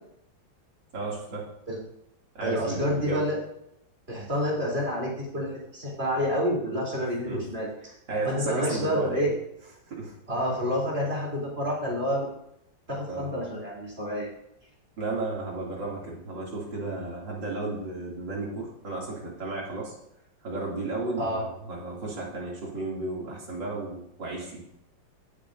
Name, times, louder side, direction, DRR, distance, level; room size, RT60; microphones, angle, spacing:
voice 1, 0.9-1.5 2.3-3.2 7.2-7.4 8.1-9.3 9.9-10.1 13.1-13.3 15.0-19.9 20.4-24.6, right 2 dB, 75° right, -3 dB, 3.5 m, -33 dB
voice 2, 2.4-3.4 4.1-7.7 8.2-9.3 10.3-12.3 12.9-14.3 21.2-21.4, equal, 30° right, -4 dB, 3.7 m, -28 dB
16.0 x 8.6 x 2.7 m, 0.79 s
omnidirectional pair, 2.0 m